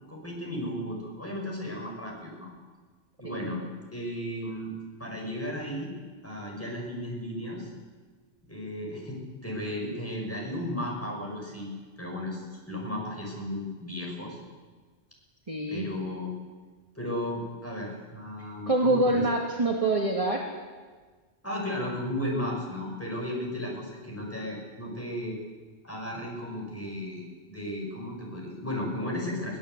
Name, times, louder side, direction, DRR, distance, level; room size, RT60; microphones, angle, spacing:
voice 1, 0.1-2.5 3.2-3.6 3.9-4.7 5.0-5.9 6.2-7.7 8.5-9.2 9.4-11.7 12.0-14.4 15.7-16.3 16.9-19.2 21.4-25.4 25.8-29.6, left 1 dB, 10° left, -1 dB, 6.4 m, -34 dB
voice 2, 15.5-15.8 18.7-20.4, right 2 dB, 30° right, -1 dB, 2.2 m, -25 dB
23.0 x 17.0 x 8.2 m, 1.4 s
omnidirectional pair, 1.2 m